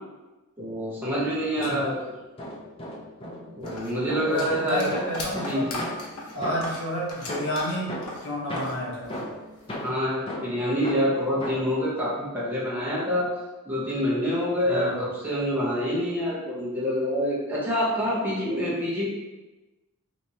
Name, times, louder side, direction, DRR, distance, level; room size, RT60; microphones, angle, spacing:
voice 1, 0.6-2.1 3.5-4.9 5.3-5.9 9.8-13.3 13.6-19.1, equal, 10° right, -8 dB, 0.8 m, -26 dB
sound 1, 0.9-2.0 2.4-6.9 7.3-11.8, left 1 dB, 25° left, 0.5 m, -37 dB
sound 2, 3.7-8.8 9.0-9.9, left 2 dB, 80° left, 0.8 m, -37 dB
voice 2, 4.2-5.7 6.3-8.0 8.2-9.2 14.6-15.1, equal, 60° left, -4 dB, 1.0 m, -30 dB
3.3 x 3.0 x 2.7 m, 1.1 s
head